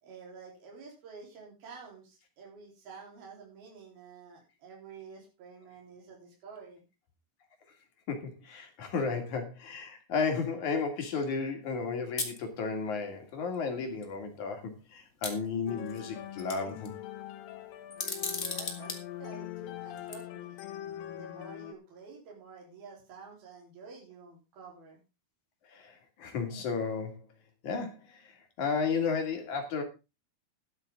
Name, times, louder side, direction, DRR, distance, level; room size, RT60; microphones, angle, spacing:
voice 1, 0.0-6.8 18.5-20.6 21.1-25.0, right 5 dB, 75° right, -1 dB, 5.9 m, -50 dB
voice 2, 8.1-16.9 25.7-27.2 27.6-28.0 28.6-29.8, left 5 dB, 55° left, 4 dB, 3.8 m, -33 dB
sound 1, 12.2-12.4 13.5-13.6 14.0-14.1 15.2-16.0 16.4-16.9 17.9-19.0 19.9-20.1, left 3 dB, 30° left, 1.4 m, -35 dB
sound 2, 15.7-21.7, left 12 dB, 75° left, 2.6 m, -42 dB
12.5 x 11.5 x 3.8 m, 0.28 s
omnidirectional pair, 4.4 m